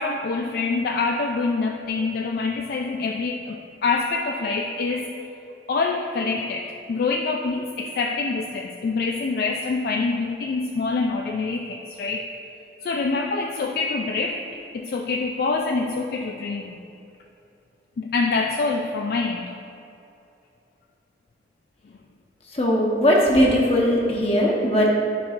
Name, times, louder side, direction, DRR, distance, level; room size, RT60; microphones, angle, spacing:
voice 1, 0.0-5.1 5.7-12.3 12.8-14.4 14.7-16.8 18.0-19.5, left 4 dB, 55° left, 2 dB, 0.3 m, -25 dB
voice 2, 22.5-24.9, equal, 35° left, -3 dB, 1.0 m, -19 dB
9.7 x 5.3 x 2.5 m, 2.8 s
head